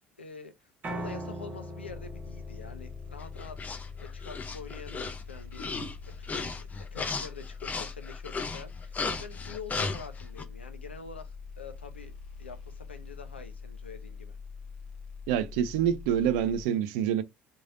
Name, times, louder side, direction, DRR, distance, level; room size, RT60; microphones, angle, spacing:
voice 1, 0.2-5.7 6.2-12.1 12.4-14.4, left 5 dB, 85° left, 0.5 m, -46 dB
Piano, 0.8-7.0, equal, 30° right, 1.2 m, -43 dB
sound 1, 1.9-16.6, left 5 dB, 50° left, 1.2 m, -44 dB
sound 2, 3.2-10.4, left 4 dB, 25° left, 0.6 m, -35 dB
voice 2, 15.3-17.2, right 9 dB, 60° right, 0.4 m, -26 dB
3.1 x 2.6 x 2.5 m
figure-of-eight pair, 55°, 6 cm